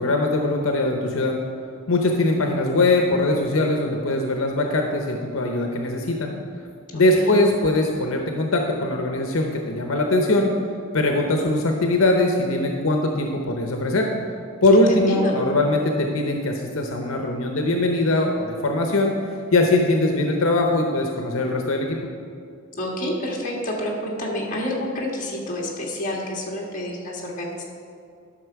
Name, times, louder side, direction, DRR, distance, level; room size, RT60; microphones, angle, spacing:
voice 1, 0.0-1.4 1.9-6.3 6.9-10.5 10.9-14.1 14.6-19.1 19.5-22.0, left 2 dB, 75° left, 3 dB, 0.8 m, -21 dB
voice 2, 6.9-7.4 14.7-15.3 22.7-27.6, left 1 dB, 35° left, -2 dB, 1.6 m, -29 dB
11.5 x 6.1 x 4.6 m, 2.4 s
head